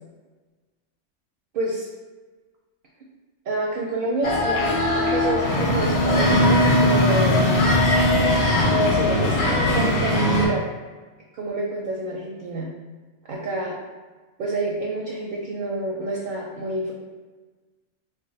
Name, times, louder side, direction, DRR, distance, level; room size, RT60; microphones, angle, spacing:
voice 1, 1.5-1.9 3.5-7.4 8.7-10.7 11.3-12.7 13.3-13.8 14.4-16.9, right 2 dB, 60° right, -2 dB, 0.6 m, -28 dB
sound 1, 4.2-10.5, left 1 dB, 65° left, 0.9 m, -19 dB
2.4 x 2.2 x 3.7 m, 1.3 s
omnidirectional pair, 1.3 m